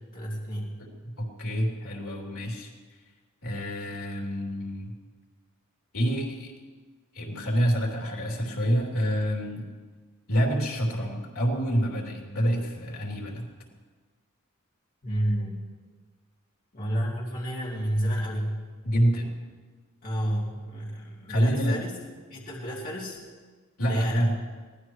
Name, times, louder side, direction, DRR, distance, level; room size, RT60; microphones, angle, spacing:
voice 1, 0.1-0.7 15.0-15.7 16.7-18.6 20.0-21.9 22.3-23.2 23.8-24.3, equal, 40° left, -5 dB, 2.7 m, -30 dB
voice 2, 0.8-2.7 3.4-4.9 5.9-6.5 7.1-9.6 10.3-13.5 18.8-19.3 21.3-21.8 23.8-24.3, equal, 80° left, -2 dB, 3.3 m, -27 dB
23.0 x 17.5 x 3.2 m, 1.4 s
head